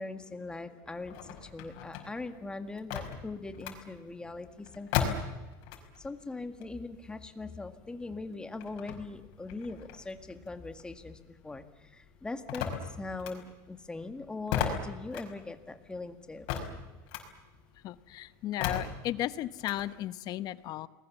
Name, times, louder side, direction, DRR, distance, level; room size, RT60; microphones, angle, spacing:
voice 1, 0.0-5.2 6.0-16.5, left 3 dB, 10° left, 8 dB, 1.9 m, -41 dB
sound 1, 1.0-6.1 6.4-11.3 11.6-19.8, left 8 dB, 65° left, 5.2 m, -37 dB
voice 2, 17.8-20.9, left 13 dB, 45° left, 15 dB, 1.0 m, -35 dB
29.0 x 20.5 x 7.3 m, 1.1 s
supercardioid pair, 145°, 9 cm